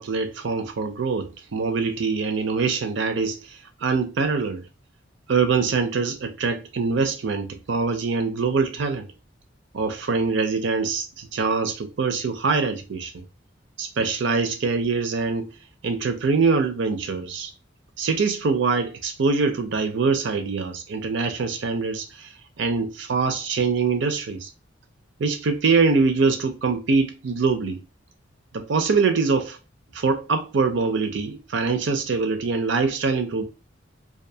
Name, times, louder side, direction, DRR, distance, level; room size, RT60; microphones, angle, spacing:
voice 1, 0.0-4.6 5.3-9.1 9.7-13.2 13.8-15.5 15.8-17.5 18.0-22.3 22.6-24.5 25.2-27.8 28.5-29.6 29.9-33.4, right 4 dB, 70° right, 0.5 m, -24 dB
2.5 x 2.3 x 2.7 m
head